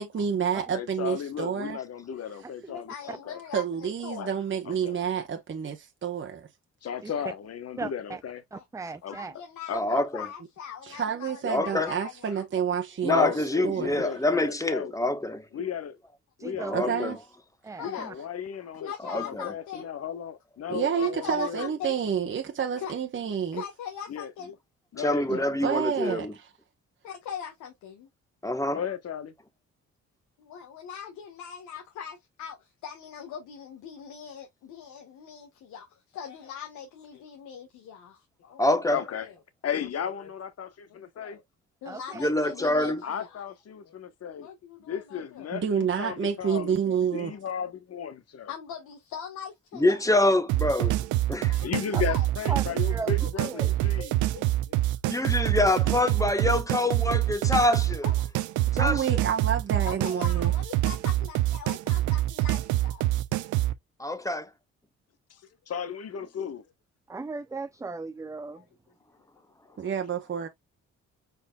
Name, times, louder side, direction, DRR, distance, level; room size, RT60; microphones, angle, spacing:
voice 1, 0.0-1.8 3.5-6.5 10.9-13.3 13.6-14.0 16.7-17.2 20.7-23.6 25.3-26.3 45.5-47.3 58.8-60.5 69.8-70.5, right 7 dB, 40° right, 1.1 m, -29 dB
voice 2, 0.7-3.4 4.2-4.3 4.6-5.0 6.8-8.4 9.0-9.2 9.7-10.1 13.1-14.9 15.5-16.0 16.4-17.1 17.8-21.7 24.1-24.3 24.9-25.6 28.7-29.3 38.9-39.3 39.6-41.4 43.0-44.5 44.8-48.5 51.6-54.3 65.3-65.4 65.7-66.6, left 8 dB, 55° left, 1.3 m, -35 dB
voice 3, 2.7-4.3 8.5-12.4 17.8-18.1 18.8-19.9 20.9-22.0 22.8-22.9 23.5-24.5 27.0-28.1 30.4-39.3 40.0-40.3 40.9-41.4 41.8-43.4 43.8-43.9 44.4-45.5 47.0-47.4 48.5-50.1 51.5-52.5 53.2-53.7 54.0-54.1 54.3-54.8 58.0-58.7 59.9-63.1 68.5-68.7 69.6-69.8, left 8 dB, 90° left, 1.5 m, -41 dB
voice 4, 7.8-8.2 8.5-9.4 16.4-16.8 17.6-18.1 41.9-42.2 51.9-52.0 52.5-52.6 52.9-53.8 67.1-68.6, right 4 dB, 10° right, 0.4 m, -37 dB
voice 5, 9.7-10.3 11.4-11.9 13.0-15.4 16.6-17.2 19.0-19.5 25.0-26.3 28.4-28.8 38.6-39.0 42.1-43.0 49.7-51.0 51.3-51.6 55.1-58.1 58.7-59.2 64.0-64.5, left 1 dB, 10° left, 1.3 m, -26 dB
sound 1, 50.5-63.7, right 15 dB, 85° right, 0.7 m, -26 dB
5.3 x 4.2 x 2.3 m
supercardioid pair, 70°, 29 cm